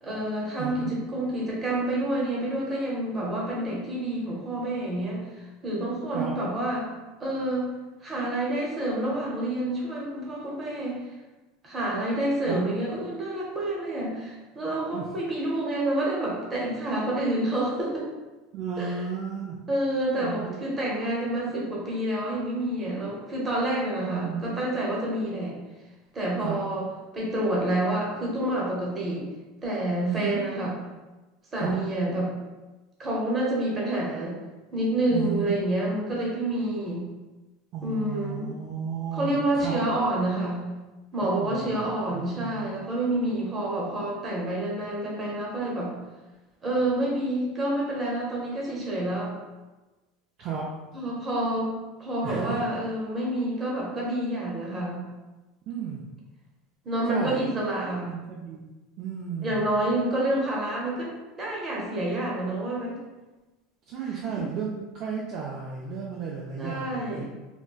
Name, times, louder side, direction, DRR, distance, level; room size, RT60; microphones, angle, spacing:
voice 1, 0.0-6.9 7.2-7.7 8.0-11.0 11.6-18.1 18.8-19.0 19.7-25.5 26.1-26.9 27.1-29.2 29.6-30.8 31.5-32.3 33.0-34.4 34.7-37.1 37.8-38.5 39.1-40.6 41.1-45.9 46.6-49.3 50.9-51.7 52.0-55.0 56.8-58.1 59.4-61.1 61.4-63.0 64.0-64.2 66.6-67.3, right 1 dB, 20° right, -4 dB, 0.7 m, -28 dB
voice 2, 0.6-0.9 6.1-6.3 12.5-12.6 14.9-15.1 18.5-19.6 20.1-20.6 23.9-24.6 26.4-26.6 30.0-30.5 31.6-31.7 35.1-35.6 37.7-39.8 41.2-41.7 42.1-42.8 50.4-50.7 52.2-52.6 55.7-56.0 57.1-57.4 58.0-58.7 59.0-59.7 63.9-67.3, right 7 dB, 40° right, -3 dB, 0.3 m, -33 dB
3.7 x 2.1 x 2.3 m, 1.1 s
supercardioid pair, 160°, 0 cm